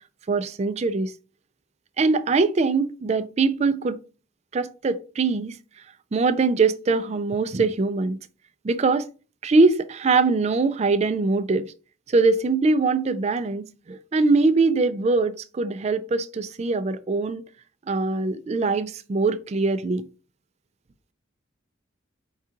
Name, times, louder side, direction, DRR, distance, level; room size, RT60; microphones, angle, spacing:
voice 1, 0.3-1.1 2.0-4.0 4.5-5.5 6.1-8.2 8.6-9.0 9.4-11.7 12.1-17.4 17.9-20.0, right 3 dB, 35° right, 0.4 m, -22 dB
4.7 x 2.8 x 3.6 m
head